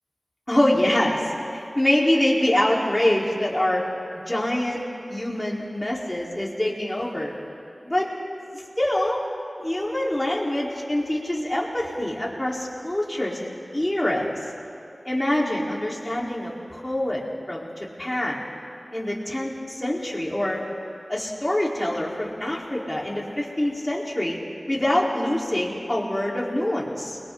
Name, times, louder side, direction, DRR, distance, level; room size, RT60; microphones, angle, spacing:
voice 1, 0.5-7.3 7.8-8.1 8.5-9.2 9.6-14.3 15.1-17.2 17.5-18.4 18.9-20.6 21.1-24.4 24.7-27.2, left 1 dB, 20° left, -4 dB, 4.0 m, -25 dB
29.5 x 22.5 x 4.0 m, 3.0 s
wide cardioid pair, 70°, 0 cm